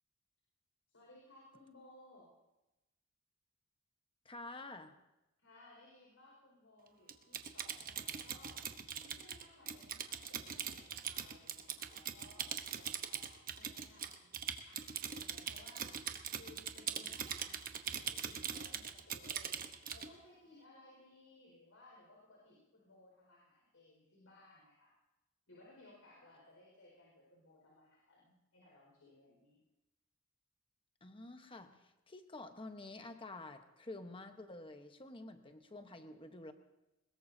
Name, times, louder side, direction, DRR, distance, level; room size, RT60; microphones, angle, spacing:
voice 1, 0.9-2.3 5.4-8.6 9.0-12.5 12.7-14.3 14.6-15.9 16.3-19.5 19.9-24.9 25.5-29.6, left 2 dB, 85° left, -3 dB, 5.1 m, -61 dB
voice 2, 4.2-4.9 31.0-36.5, left 2 dB, 25° left, 7 dB, 1.1 m, -49 dB
Typing, 7.1-20.1, right 8 dB, 45° right, 1.0 m, -42 dB
22.0 x 20.5 x 2.8 m, 0.98 s
head